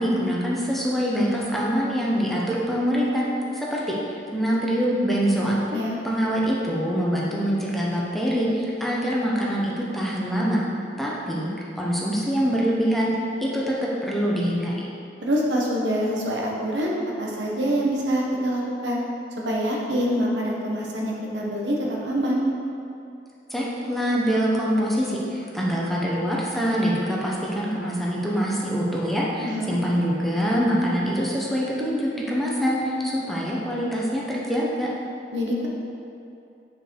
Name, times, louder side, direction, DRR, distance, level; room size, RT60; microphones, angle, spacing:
voice 1, 0.0-3.3 3.5-5.6 6.0-10.6 11.0-11.5 11.8-13.1 13.4-14.8 23.5-34.9, equal, ahead, -5 dB, 1.0 m, -24 dB
voice 2, 15.2-19.0 19.4-22.4 29.4-29.7 35.3-35.7, equal, 85° right, -3 dB, 1.4 m, -25 dB
8.8 x 5.1 x 4.7 m, 2.6 s
head